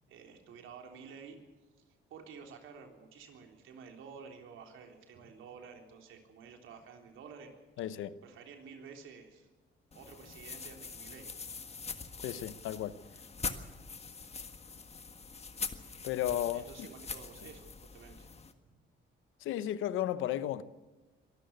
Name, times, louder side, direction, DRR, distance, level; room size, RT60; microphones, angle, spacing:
voice 1, 0.1-1.4 2.1-7.5 8.2-9.5 9.9-11.3 16.5-18.3, right 6 dB, 85° right, 3.7 m, -51 dB
voice 2, 7.8-8.2 12.2-13.0 16.0-16.7 19.4-20.6, left 12 dB, 85° left, 0.9 m, -34 dB
sound 1, 9.9-18.5, left 5 dB, 30° left, 1.7 m, -43 dB
23.5 x 13.5 x 8.2 m
cardioid pair, 90°, 20 cm